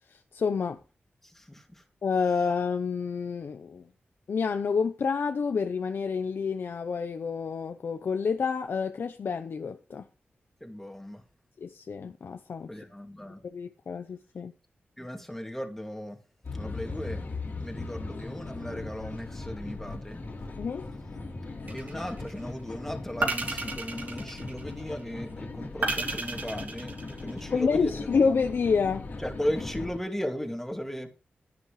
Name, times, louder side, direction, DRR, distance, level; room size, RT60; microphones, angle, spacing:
voice 1, 0.1-0.8 2.0-3.9 4.3-10.1 11.6-12.7 13.4-14.5 20.6-20.9 27.5-29.1, left 5 dB, 70° left, 0.8 m, -28 dB
voice 2, 1.2-1.8 10.6-11.2 12.7-13.4 15.0-16.2 16.5-17.3 17.6-20.2 21.7-28.2 29.2-31.2, left 1 dB, 10° left, 2.6 m, -36 dB
sound 1, 16.4-30.0, left 3 dB, 55° left, 2.5 m, -39 dB
sound 2, 21.7-22.3 23.2-24.9 25.8-27.6, right 3 dB, 50° right, 3.4 m, -32 dB
11.0 x 11.0 x 3.3 m
wide cardioid pair, 100°, 4 cm